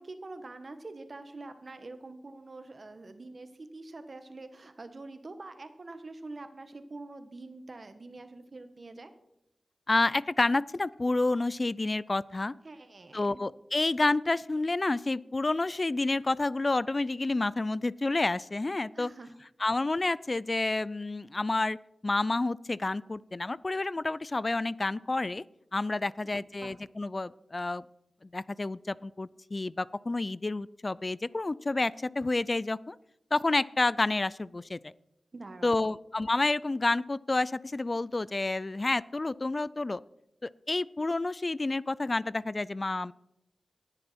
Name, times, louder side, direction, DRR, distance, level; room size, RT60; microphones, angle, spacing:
voice 1, 0.0-9.1 12.6-13.4 18.9-19.3 26.0-26.7 35.3-36.0, right 2 dB, 55° right, 9 dB, 1.3 m, -45 dB
voice 2, 9.9-12.5 13.1-19.1 19.6-21.8 22.0-25.4 25.7-27.8 28.3-33.0 33.3-34.9 35.6-40.0 40.4-43.1, left 2 dB, 45° left, 20 dB, 0.3 m, -29 dB
19.0 x 6.8 x 4.3 m, 0.83 s
cardioid pair, 45°, 0 cm